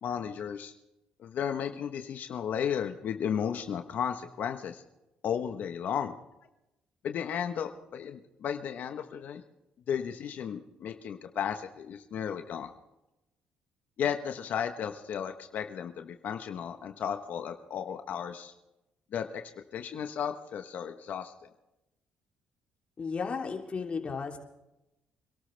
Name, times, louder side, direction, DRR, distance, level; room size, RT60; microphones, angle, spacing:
voice 1, 0.0-0.7 1.2-4.8 5.2-6.1 7.0-9.4 9.9-12.7 14.0-18.5 19.1-19.4 19.7-21.3, left 8 dB, 65° left, 7 dB, 1.2 m, -34 dB
voice 2, 23.0-24.4, left 5 dB, 40° left, 2 dB, 3.2 m, -34 dB
27.0 x 13.0 x 3.4 m, 0.91 s
cardioid pair, 80°, 3 cm